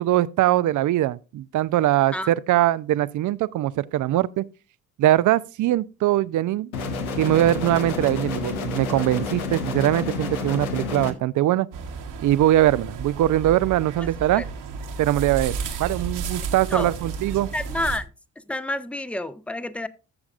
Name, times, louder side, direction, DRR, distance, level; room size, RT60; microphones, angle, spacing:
voice 1, 0.0-4.4 5.0-6.7 7.2-11.7 12.2-14.4 15.0-15.5 15.8-17.5, right 14 dB, 45° right, 0.5 m, -21 dB
sound 1, 6.7-11.1, left 4 dB, 90° left, 0.9 m, -29 dB
sound 2, 11.7-18.0, right 5 dB, 70° right, 1.5 m, -33 dB
voice 2, 14.0-14.4 16.7-16.9 17.5-18.1 18.5-19.9, left 1 dB, 5° left, 0.7 m, -29 dB
13.0 x 7.1 x 2.5 m
hypercardioid pair, 40°, 42 cm